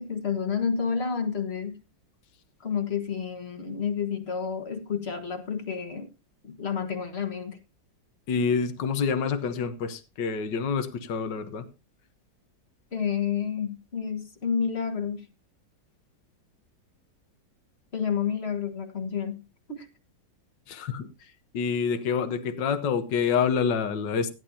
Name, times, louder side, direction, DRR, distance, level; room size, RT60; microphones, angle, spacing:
voice 1, 0.0-1.8 2.6-6.1 6.4-7.6 12.9-15.3 17.9-19.4 19.7-19.9, left 6 dB, 35° left, 1.6 m, -30 dB
voice 2, 8.3-11.6 20.7-21.1 21.5-24.3, left 6 dB, 70° left, 1.7 m, -27 dB
16.5 x 11.0 x 2.7 m
omnidirectional pair, 2.0 m